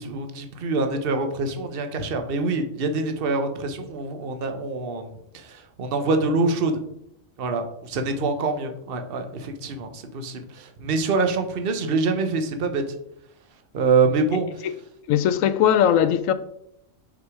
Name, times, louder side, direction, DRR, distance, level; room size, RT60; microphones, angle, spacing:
voice 1, 0.0-5.1 5.3-6.7 7.4-12.8 13.7-14.5, right 3 dB, 50° right, 1.0 m, -25 dB
voice 2, 14.3-14.7 15.1-16.3, left 9 dB, 75° left, 0.9 m, -20 dB
5.9 x 4.9 x 4.8 m
omnidirectional pair, 1.4 m